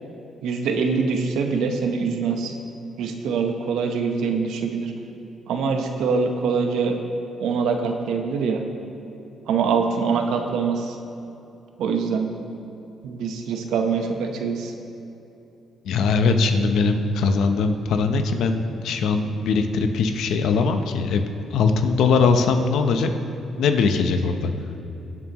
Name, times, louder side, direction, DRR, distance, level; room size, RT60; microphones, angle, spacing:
voice 1, 0.4-2.5 3.0-4.9 5.5-6.9 7.4-8.6 9.5-11.0 11.8-12.3 13.0-14.7, right 5 dB, 85° right, 4 dB, 1.0 m, -24 dB
voice 2, 15.8-21.2 21.5-23.1 23.6-24.5, left 4 dB, 80° left, 7 dB, 0.8 m, -21 dB
18.0 x 7.3 x 3.0 m, 2.9 s
cardioid pair, 90°, 0 cm